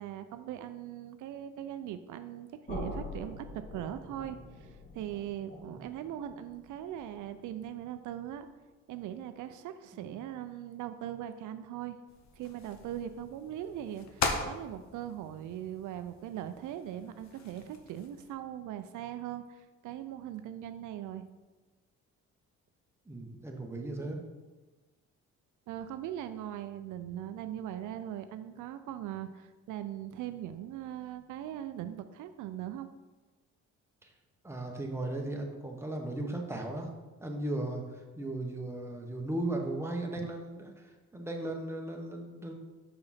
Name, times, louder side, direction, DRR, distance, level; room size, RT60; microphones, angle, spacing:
voice 1, 0.0-8.5 8.9-12.0 12.4-21.3 25.7-32.9 40.2-40.3, right 11 dB, 80° right, 10 dB, 0.5 m, -40 dB
sound 1, 2.7-8.6, left 1 dB, 30° left, 2.2 m, -45 dB
sound 2, 12.1-18.3, left 4 dB, 65° left, 1.0 m, -40 dB
voice 2, 23.1-24.2 34.0-34.1 34.4-36.9 37.2-42.5, right 2 dB, 10° right, 1 dB, 1.1 m, -37 dB
6.0 x 4.9 x 4.2 m, 1.2 s
cardioid pair, 90°, 30 cm